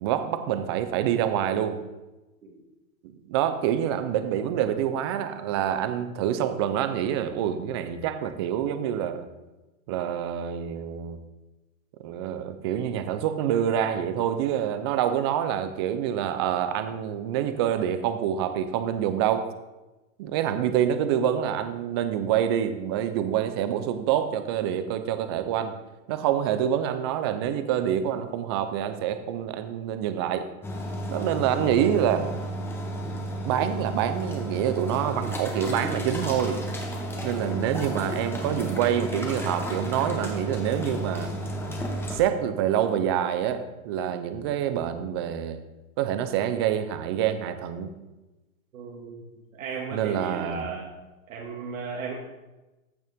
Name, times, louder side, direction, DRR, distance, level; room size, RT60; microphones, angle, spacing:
voice 1, 0.0-1.8 3.0-9.3 9.9-11.2 12.0-19.5 20.2-25.7 26.1-30.5 31.1-32.3 33.4-36.6 37.2-41.3 42.1-45.6 46.0-47.9 49.9-50.7, right 10 dB, 20° right, 10 dB, 0.4 m, -26 dB
sound 1, 30.6-42.2, right 1 dB, 5° left, 1.2 m, -32 dB
voice 2, 48.7-49.2 49.5-50.9 51.3-52.1, right 5 dB, 70° right, -2 dB, 2.1 m, -35 dB
14.5 x 6.4 x 3.5 m, 1.1 s
hypercardioid pair, 140°, 42 cm